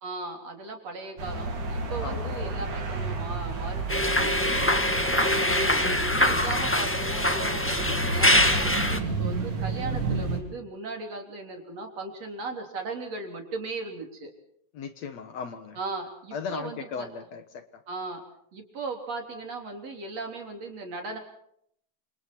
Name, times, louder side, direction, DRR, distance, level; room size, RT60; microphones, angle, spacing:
voice 1, 0.0-4.8 5.5-14.3 15.7-17.1 17.9-18.2 18.5-21.2, right 3 dB, 55° right, 3 dB, 4.5 m, -37 dB
sound 1, 1.2-10.4, right 3 dB, 70° right, 5.0 m, -31 dB
voice 2, 2.0-2.4 14.7-15.8 16.3-17.6, left 6 dB, 60° left, 9 dB, 2.4 m, -37 dB
sound 2, 3.9-9.0, left 1 dB, 10° left, 0.8 m, -24 dB
28.0 x 27.0 x 4.6 m, 0.70 s
omnidirectional pair, 3.6 m